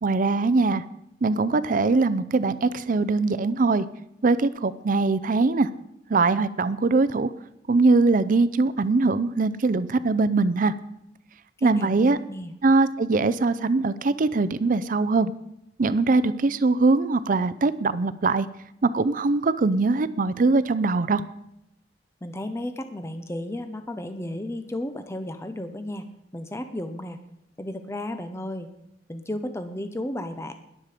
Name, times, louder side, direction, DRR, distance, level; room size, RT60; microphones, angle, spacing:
voice 1, 0.0-0.8 1.2-3.9 4.2-5.7 6.1-7.3 7.7-10.7 11.6-12.2 12.6-15.3 15.8-18.5 18.8-21.2, right 3 dB, 50° right, 15 dB, 0.5 m, -22 dB
voice 2, 11.6-12.5 22.2-26.0 26.3-27.2 27.6-28.7 29.1-30.5, left 1 dB, 15° left, 8 dB, 0.8 m, -33 dB
20.5 x 7.5 x 5.0 m, 0.83 s
head